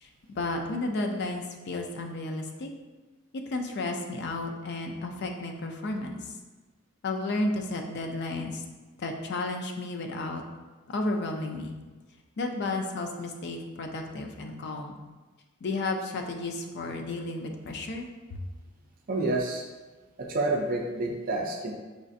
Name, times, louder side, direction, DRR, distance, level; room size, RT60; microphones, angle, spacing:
voice 1, 0.0-2.7 3.3-6.3 7.0-8.6 9.0-10.4 10.9-11.7 12.4-14.9 15.6-18.4, left 2 dB, 55° left, 3 dB, 0.4 m, -32 dB
voice 2, 19.1-19.6 20.2-21.7, right 2 dB, 45° right, 0 dB, 0.4 m, -28 dB
5.0 x 2.4 x 2.5 m, 1.3 s
head